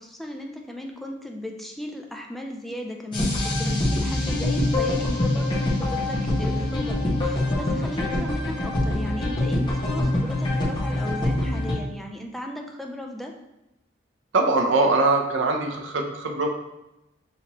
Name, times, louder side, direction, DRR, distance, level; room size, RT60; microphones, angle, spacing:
voice 1, 0.0-13.3, left 1 dB, ahead, 1 dB, 0.4 m, -36 dB
sound 1, 3.1-11.7, left 1 dB, 25° left, 1.0 m, -24 dB
voice 2, 14.3-16.5, right 3 dB, 85° right, 3 dB, 0.6 m, -22 dB
5.7 x 2.9 x 3.0 m, 0.93 s
head